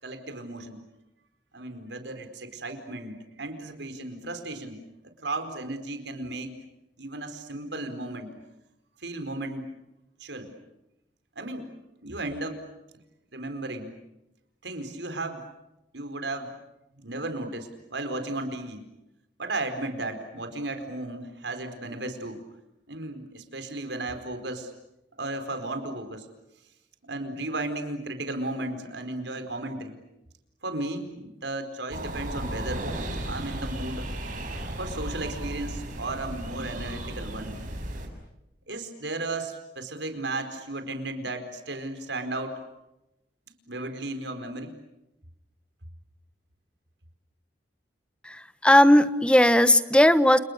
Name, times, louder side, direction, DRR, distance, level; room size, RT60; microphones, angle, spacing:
voice 1, 0.0-0.8 1.5-4.8 5.2-6.6 7.0-8.3 9.0-9.7 10.2-10.5 11.4-11.7 12.0-12.6 13.3-13.9 14.6-15.4 15.9-16.5 17.0-18.8 19.4-22.4 22.9-24.7 25.2-26.3 27.1-30.0 30.6-32.9 33.2-34.1 34.8-37.5 38.7-42.6 43.7-44.7, right 2 dB, 85° right, 7 dB, 4.6 m, -34 dB
sound 1, 31.9-38.1, right 1 dB, 50° right, 6.5 m, -35 dB
voice 2, 48.2-50.4, left 1 dB, 5° left, 12 dB, 1.1 m, -18 dB
30.0 x 29.5 x 6.7 m, 0.91 s
head